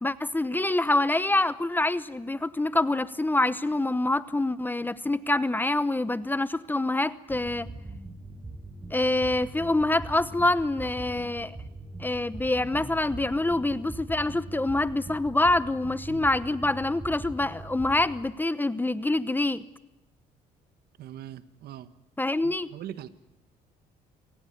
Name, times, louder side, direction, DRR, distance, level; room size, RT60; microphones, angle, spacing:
voice 1, 0.0-7.7 8.9-11.6 12.0-19.6 22.2-22.7, left 2 dB, 10° left, 15 dB, 0.9 m, -26 dB
sound 1, 7.3-18.1, right 2 dB, 20° right, 7.5 m, -41 dB
voice 2, 21.0-21.9 22.4-23.1, right 11 dB, 70° right, 13 dB, 1.5 m, -41 dB
27.0 x 18.5 x 9.5 m, 0.96 s
cardioid pair, 110°, 17 cm